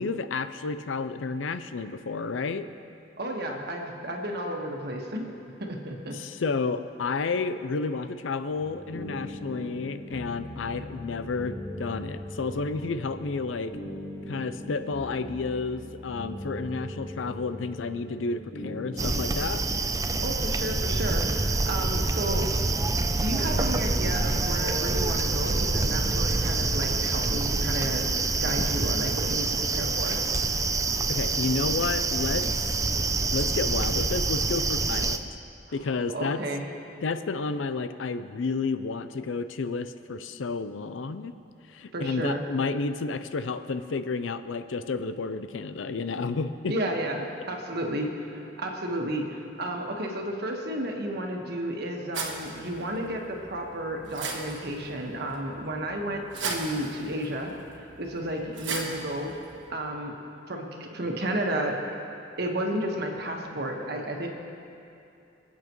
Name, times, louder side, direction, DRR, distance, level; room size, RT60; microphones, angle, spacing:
voice 1, 0.0-2.7 6.1-13.8 14.3-19.6 31.1-32.8 33.3-35.2 35.7-36.4 37.0-41.3 41.7-46.7, left 4 dB, 90° left, 11 dB, 0.5 m, -31 dB
voice 2, 3.2-5.3 5.6-6.2 20.2-22.5 23.1-30.2 36.1-36.6 41.9-42.4 46.7-57.5 58.0-59.3 59.7-60.1 60.5-61.8 62.4-64.3, right 1 dB, 60° right, 1 dB, 1.4 m, -32 dB
sound 1, 8.6-27.3, left 1 dB, 65° left, 2.2 m, -40 dB
sound 2, 19.0-35.2, right 3 dB, 20° right, 0.4 m, -26 dB
sound 3, 52.1-59.7, right 4 dB, 80° right, 1.4 m, -38 dB
25.5 x 8.6 x 3.1 m, 2.7 s
head